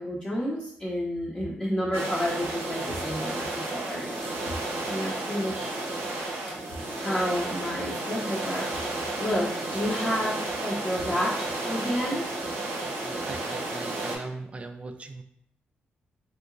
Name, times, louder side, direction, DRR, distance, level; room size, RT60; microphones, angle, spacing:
voice 1, 0.0-4.5 4.9-5.8 6.7-8.9 9.2-12.2, equal, 15° left, -6 dB, 0.7 m, -30 dB
sound 1, 1.9-14.2, right 2 dB, 90° right, 0.8 m, -32 dB
voice 2, 12.9-15.2, right 3 dB, 30° right, 6 dB, 0.4 m, -39 dB
3.4 x 2.8 x 2.5 m, 0.69 s
cardioid pair, 80°, 4 cm